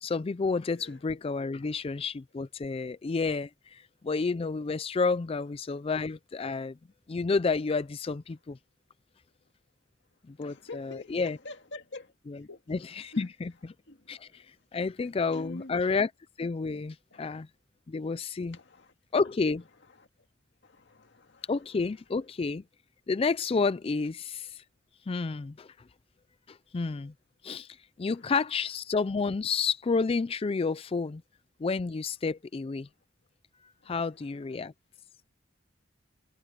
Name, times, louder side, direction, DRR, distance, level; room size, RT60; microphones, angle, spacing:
voice 1, 0.0-6.8 7.1-8.6 10.3-11.4 12.3-12.4 12.7-13.7 14.1-16.1 16.4-17.5 17.9-18.6 19.1-19.6 21.5-22.6 23.1-24.6 25.1-25.7 26.5-27.1 27.4-31.2 31.6-32.9 33.9-34.7, left 4 dB, 30° left, 0.4 m, -30 dB
voice 2, 0.7-1.0 1.6-1.8 10.4-12.1 12.5-12.6 13.1-13.3 13.9-14.5 15.0-15.8 17.1-17.4 18.5-18.9 20.0-20.1 20.6-21.5 33.8-33.9 34.6-34.7, left 2 dB, 65° left, 2.0 m, -46 dB
head